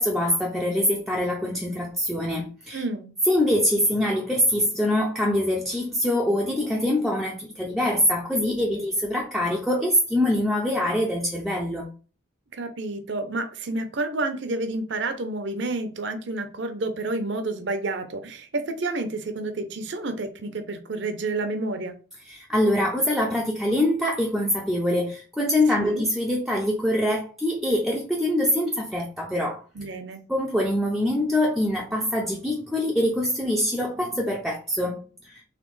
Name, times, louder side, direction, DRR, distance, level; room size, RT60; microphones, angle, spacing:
voice 1, 0.0-2.8 3.3-11.9 22.3-29.6 30.3-35.4, left 1 dB, ahead, 0.4 m, -24 dB
voice 2, 2.7-3.1 8.7-8.8 12.5-22.0 25.8-26.0 29.7-30.2, right 2 dB, 65° right, 0.6 m, -30 dB
4.2 x 3.3 x 3.2 m
head